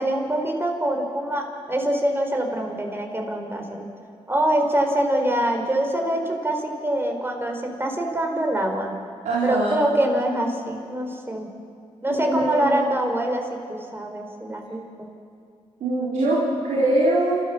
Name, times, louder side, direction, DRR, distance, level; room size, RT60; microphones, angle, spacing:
voice 1, 0.0-3.9 4.3-8.9 9.4-11.5 12.0-15.1, right 1 dB, 20° right, 3 dB, 4.6 m, -24 dB
voice 2, 9.2-9.8 12.1-12.9 15.8-17.4, right 2 dB, 85° right, -7 dB, 4.3 m, -22 dB
29.0 x 14.0 x 7.4 m, 2.3 s
supercardioid pair, 55°, 12 cm